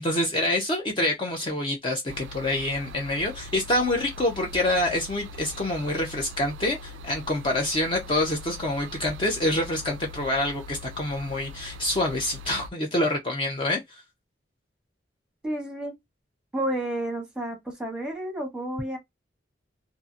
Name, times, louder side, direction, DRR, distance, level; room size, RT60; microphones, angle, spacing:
voice 1, 0.0-14.0, left 1 dB, 30° left, 0.5 m, -26 dB
sound 1, 2.1-12.7, left 2 dB, 90° right, 0.3 m, -42 dB
voice 2, 15.4-15.9 16.5-19.0, right 1 dB, 5° right, 1.0 m, -31 dB
2.7 x 2.5 x 2.4 m
head